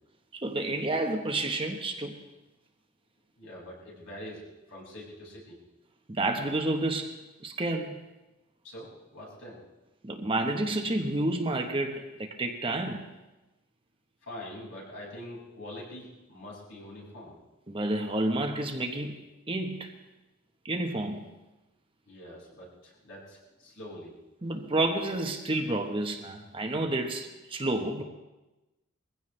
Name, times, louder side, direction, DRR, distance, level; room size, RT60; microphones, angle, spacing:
voice 1, 0.3-2.2 6.1-8.0 10.0-13.1 17.7-19.2 19.5-19.9 20.6-21.3 24.4-28.0, right 2 dB, 25° right, 3 dB, 1.1 m, -30 dB
voice 2, 3.4-4.4 4.7-5.6 8.6-9.6 14.2-17.4 22.1-24.2, left 1 dB, 65° left, -5 dB, 6.0 m, -44 dB
22.0 x 16.0 x 3.3 m, 1.1 s
head